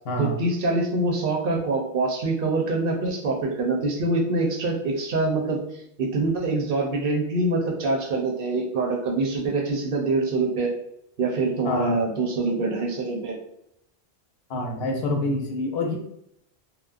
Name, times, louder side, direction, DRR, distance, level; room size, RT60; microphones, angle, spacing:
voice 1, 0.2-5.6 6.0-10.7 11.2-13.4, right 2 dB, 65° right, -1 dB, 0.8 m, -25 dB
voice 2, 11.6-12.0 14.5-16.0, left 1 dB, 75° left, 2 dB, 0.8 m, -26 dB
2.9 x 2.0 x 2.3 m, 0.75 s
omnidirectional pair, 1.1 m